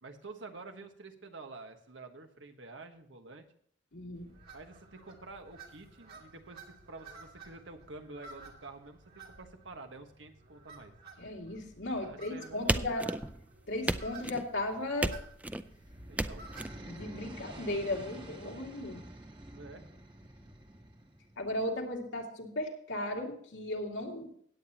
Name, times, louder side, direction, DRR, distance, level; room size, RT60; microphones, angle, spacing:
voice 1, 0.0-3.4 4.5-10.9 12.0-13.1 16.1-16.4 19.5-19.9, right 3 dB, 80° right, 6 dB, 1.4 m, -49 dB
voice 2, 3.9-4.3 11.2-13.1 13.7-15.1 16.9-19.1 21.4-24.3, left 1 dB, 80° left, 0 dB, 2.4 m, -36 dB
sound 1, 4.1-18.0, right 3 dB, 55° right, 2.4 m, -54 dB
sound 2, 12.7-13.5 13.9-14.5 15.0-15.6 16.2-16.7, right 1 dB, 10° right, 0.4 m, -33 dB
sound 3, 15.6-21.5, right 1 dB, 25° right, 1.4 m, -49 dB
17.0 x 8.9 x 2.9 m, 0.65 s
head